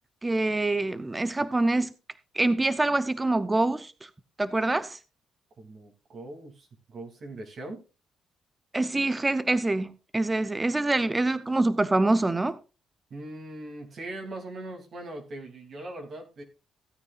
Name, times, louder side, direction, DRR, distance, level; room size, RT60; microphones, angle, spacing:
voice 1, 0.2-1.9 2.3-4.1 4.4-5.0 8.7-12.6, right 2 dB, 20° right, 0.7 m, -25 dB
voice 2, 5.6-7.8 13.1-16.4, right 2 dB, 50° right, 2.9 m, -40 dB
16.0 x 9.2 x 2.5 m
cardioid pair, 90°, 0 cm